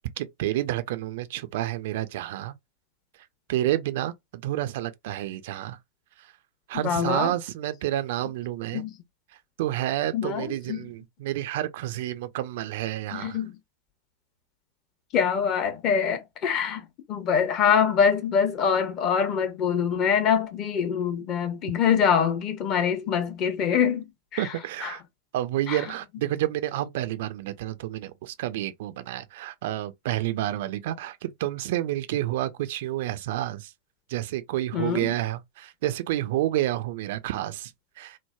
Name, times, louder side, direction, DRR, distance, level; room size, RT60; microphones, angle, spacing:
voice 1, 0.2-2.5 3.5-5.8 6.2-6.3 6.7-8.8 9.6-13.4 24.4-25.0 25.3-33.7 34.1-37.7 38.0-38.2, right 14 dB, 55° right, 0.3 m, -29 dB
voice 2, 6.7-7.3 8.7-8.9 10.1-10.8 13.1-13.6 15.1-24.5 24.8-25.0 25.7-25.8 34.7-35.1, left 7 dB, 35° left, 0.7 m, -24 dB
3.1 x 2.1 x 2.2 m
figure-of-eight pair, 90°, 0 cm